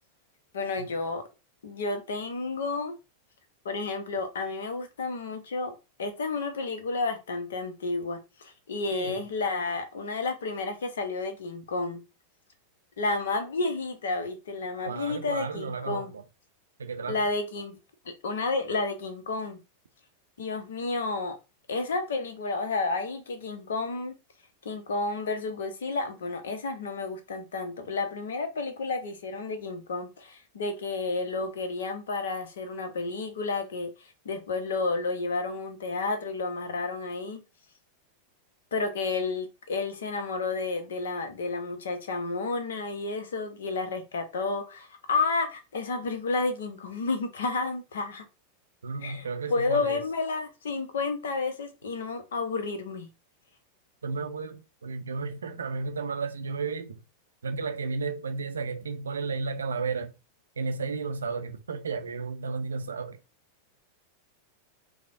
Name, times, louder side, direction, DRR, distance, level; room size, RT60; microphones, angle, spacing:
voice 1, 0.5-1.2 1.6-2.9 3.6-5.7 6.0-12.0 13.0-16.1 17.1-17.8 18.0-19.6 20.4-21.4 21.7-24.1 24.6-33.9 34.2-37.4 38.7-48.2 49.0-53.1, left 3 dB, 65° left, 0.7 m, -31 dB
voice 2, 8.9-9.2 14.8-16.2 16.8-17.2 48.8-50.0 54.0-57.0 57.4-60.1 60.6-63.2, right 4 dB, 70° right, 0.4 m, -33 dB
4.8 x 2.1 x 2.5 m
figure-of-eight pair, 90°, 0 cm